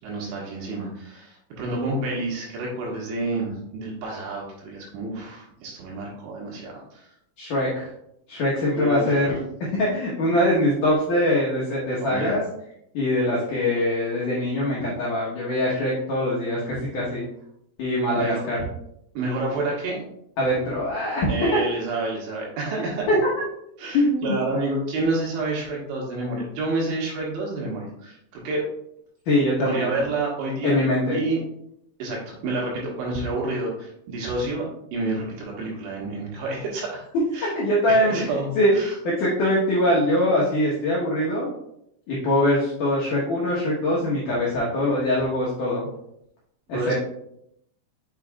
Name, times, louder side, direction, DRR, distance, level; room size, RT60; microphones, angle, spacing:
voice 1, 0.0-7.1 8.7-9.1 12.0-12.4 18.1-18.5 19.2-20.0 21.3-23.1 23.8-28.7 29.6-30.8 31.1-31.4 32.0-37.0 37.3-37.5 37.9-38.5 38.7-38.9 46.7-46.9, right 2 dB, 75° right, -3 dB, 3.8 m, -29 dB
voice 2, 7.4-7.9 8.3-12.4 12.9-17.2 17.8-18.6 20.4-21.3 22.8-23.3 23.9-24.4 29.3-29.9 30.6-31.2 37.5-38.7 39.0-41.5 42.1-45.9 46.7-46.9, left 1 dB, 75° left, -5 dB, 1.9 m, -23 dB
6.4 x 6.3 x 2.3 m, 0.76 s
omnidirectional pair, 5.4 m